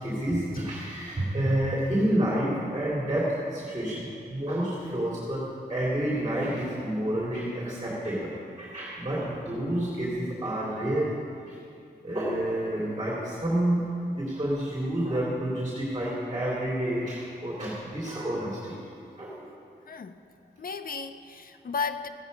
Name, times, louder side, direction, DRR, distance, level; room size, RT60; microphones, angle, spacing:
voice 1, 0.0-8.3 8.6-11.1 11.5-11.6 12.0-13.8 14.2-18.7 19.2-19.5, right 1 dB, 25° right, -6 dB, 3.0 m, -29 dB
voice 2, 19.9-20.2 20.6-22.1, left 5 dB, 55° left, 8 dB, 0.7 m, -34 dB
15.0 x 9.0 x 5.3 m, 2.5 s
wide cardioid pair, 100°, 18 cm